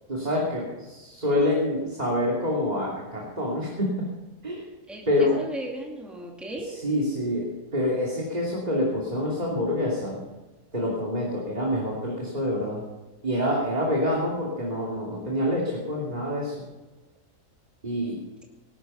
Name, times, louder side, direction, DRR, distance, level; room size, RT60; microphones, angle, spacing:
voice 1, 0.1-4.1 4.4-4.6 5.1-5.4 6.6-10.2 10.7-12.8 13.2-16.6 17.8-18.2, left 1 dB, 25° right, -3 dB, 3.0 m, -27 dB
voice 2, 4.9-6.7, right 1 dB, ahead, 0 dB, 2.4 m, -36 dB
19.0 x 12.0 x 5.6 m, 1.2 s
omnidirectional pair, 1.7 m